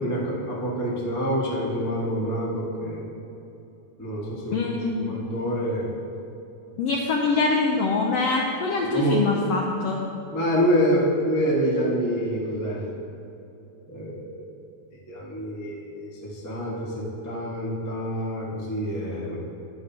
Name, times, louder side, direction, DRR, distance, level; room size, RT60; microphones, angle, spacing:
voice 1, 0.0-3.0 4.0-5.9 8.9-9.2 10.3-12.8 13.9-14.2 15.1-19.4, equal, 25° left, -5 dB, 0.3 m, -26 dB
voice 2, 4.5-5.1 6.8-10.0, left 4 dB, 80° left, 0 dB, 1.4 m, -24 dB
11.5 x 10.0 x 2.8 m, 2.8 s
omnidirectional pair, 3.6 m